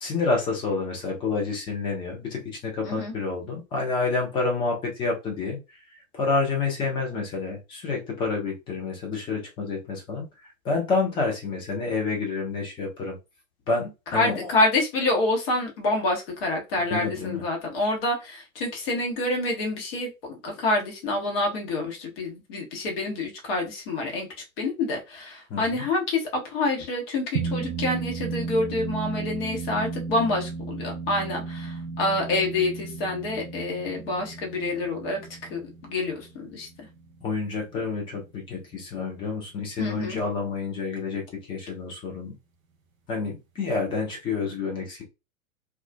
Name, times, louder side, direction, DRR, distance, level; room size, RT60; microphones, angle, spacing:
voice 1, 0.0-5.6 6.1-10.2 10.6-13.2 13.7-14.5 16.9-17.4 25.5-25.9 37.2-42.3 43.1-45.0, left 4 dB, 10° left, 0 dB, 0.5 m, -28 dB
voice 2, 2.8-3.1 14.1-24.3 24.6-36.7 39.8-40.2, left 2 dB, 40° left, 1 dB, 1.1 m, -27 dB
sound 1, 27.3-38.0, right 4 dB, 70° right, 0.5 m, -34 dB
2.4 x 2.3 x 2.2 m, 0.25 s
figure-of-eight pair, 105°, 43 cm